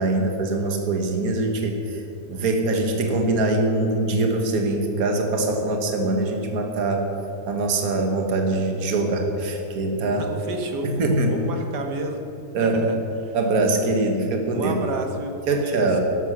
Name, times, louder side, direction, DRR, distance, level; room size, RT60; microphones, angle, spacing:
voice 1, 0.0-2.0 2.3-7.1 7.5-10.2 10.8-11.4 12.5-12.9 13.3-14.7 15.5-16.0, right 2 dB, 60° right, 3 dB, 1.8 m, -23 dB
voice 2, 9.9-12.2 12.6-13.0 13.2-13.4 14.5-15.9, right 2 dB, 80° right, 3 dB, 2.1 m, -31 dB
12.5 x 11.5 x 6.1 m, 2.9 s
omnidirectional pair, 1.8 m